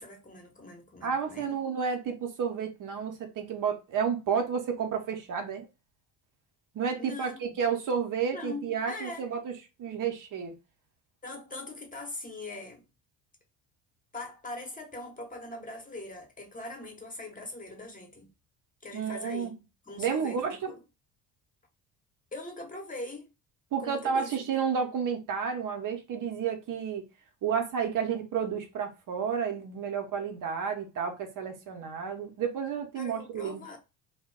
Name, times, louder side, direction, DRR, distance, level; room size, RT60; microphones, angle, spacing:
voice 1, 0.0-1.6 7.0-7.6 8.3-9.3 11.2-12.8 14.1-18.3 18.8-20.8 22.3-23.3 23.8-24.4 32.9-33.8, left 2 dB, 15° left, 0.9 m, -41 dB
voice 2, 1.0-5.7 6.7-9.5 9.8-10.6 18.9-19.5 20.0-20.7 23.7-27.0 27.4-33.6, right 7 dB, 45° right, 0.8 m, -31 dB
2.2 x 2.1 x 3.5 m
hypercardioid pair, 55°, 46 cm